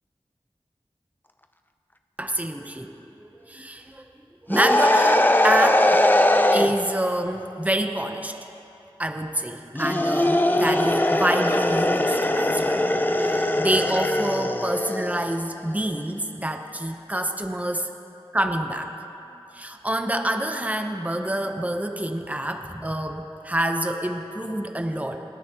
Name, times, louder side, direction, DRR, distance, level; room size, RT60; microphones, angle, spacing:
voice 1, 2.2-4.0 4.5-6.0 6.5-8.3 9.0-12.9 13.2-17.8 18.3-18.9 19.5-25.2, right 1 dB, 15° right, 5 dB, 0.9 m, -27 dB
sound 1, 4.5-6.7 9.7-15.3, left 1 dB, 20° left, 0.6 m, -21 dB
26.5 x 10.0 x 3.0 m, 2.9 s
wide cardioid pair, 40°, 10 cm